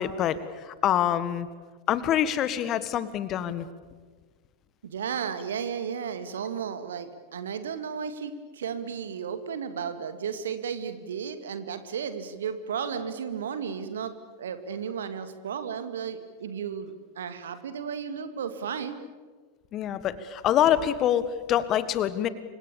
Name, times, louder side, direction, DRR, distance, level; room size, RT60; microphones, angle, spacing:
voice 1, 0.0-1.5 1.9-3.6 19.7-22.3, left 10 dB, 35° left, 14 dB, 1.7 m, -25 dB
voice 2, 4.8-19.0, right 7 dB, 65° right, 10 dB, 2.3 m, -34 dB
29.0 x 25.5 x 7.1 m, 1.4 s
figure-of-eight pair, 90°, 0 cm